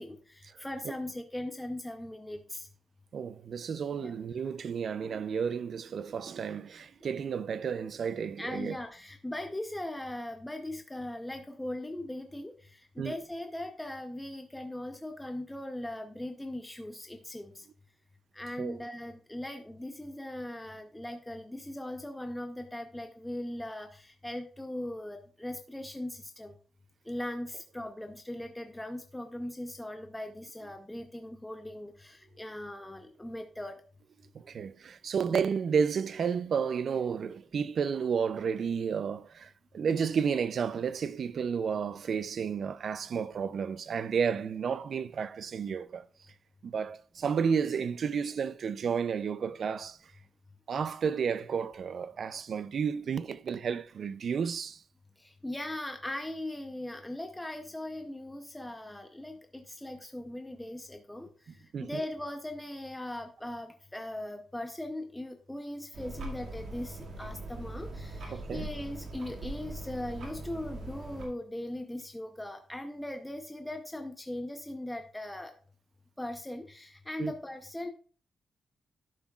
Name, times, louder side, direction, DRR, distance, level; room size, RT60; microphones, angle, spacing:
voice 1, 0.0-2.7 4.0-4.1 8.4-17.6 18.3-26.6 27.1-33.8 55.2-61.3 61.8-75.5 76.2-77.9, left 1 dB, 5° left, 0.6 m, -39 dB
voice 2, 3.1-8.8 13.0-13.2 18.6-18.8 34.3-46.1 46.6-50.1 50.7-54.8 61.7-62.0 68.3-68.7 77.2-77.3, right 6 dB, 50° right, 0.4 m, -32 dB
sound 1, 65.9-71.3, right 2 dB, 85° right, 2.0 m, -41 dB
11.5 x 6.1 x 2.4 m
wide cardioid pair, 170°, 0 cm